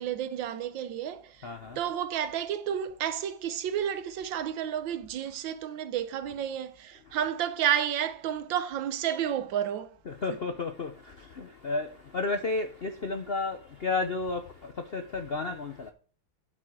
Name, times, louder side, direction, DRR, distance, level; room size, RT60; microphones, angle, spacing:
voice 1, 0.0-1.5 1.8-9.9, right 9 dB, 70° right, 1.5 m, -31 dB
voice 2, 1.4-1.8 10.1-15.9, left 3 dB, 85° left, 0.5 m, -32 dB
12.0 x 6.4 x 4.7 m
omnidirectional pair, 2.3 m